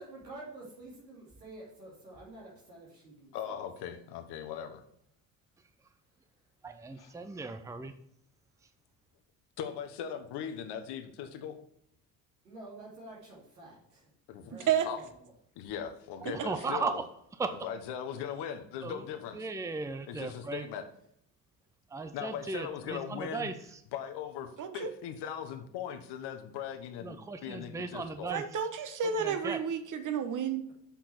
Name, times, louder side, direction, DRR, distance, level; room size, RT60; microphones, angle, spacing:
voice 1, 0.0-3.9 12.4-14.1 14.4-15.3 22.3-22.4, right 2 dB, 90° right, -3 dB, 2.8 m, -49 dB
voice 2, 3.3-4.8 7.0-7.1 9.6-11.6 14.3-14.5 14.9-15.0 15.6-17.0 17.5-19.5 20.1-20.8 22.1-23.5 23.9-28.3, left 8 dB, 55° left, 7 dB, 1.2 m, -39 dB
voice 3, 6.6-7.9 16.4-17.1 17.4-17.7 18.8-19.0 19.3-20.7 21.9-23.8 27.0-28.4 29.0-29.6, right 4 dB, 5° right, 9 dB, 0.7 m, -37 dB
voice 4, 24.6-24.9 28.3-30.7, right 7 dB, 40° right, 9 dB, 1.2 m, -31 dB
7.3 x 5.8 x 4.4 m, 0.73 s
hypercardioid pair, 60°, 48 cm